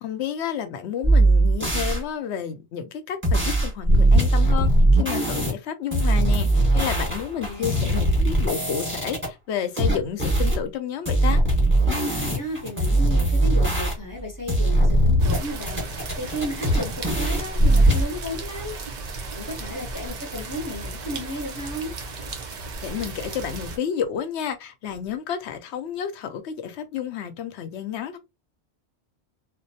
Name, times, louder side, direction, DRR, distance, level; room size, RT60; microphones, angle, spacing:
voice 1, 0.0-11.4 22.8-28.2, left 8 dB, 80° left, 0.9 m, -30 dB
sound 1, 1.0-2.0 3.2-5.5 5.9-9.3 9.8-10.6 11.1-14.2 14.5-15.4 15.7-18.0, right 1 dB, 10° right, 1.0 m, -20 dB
voice 2, 7.4-8.3 11.8-18.8 19.3-21.9, left 1 dB, 20° left, 0.7 m, -34 dB
sound 2, 15.2-23.8, right 3 dB, 50° right, 0.6 m, -35 dB
2.6 x 2.0 x 2.7 m
omnidirectional pair, 1.1 m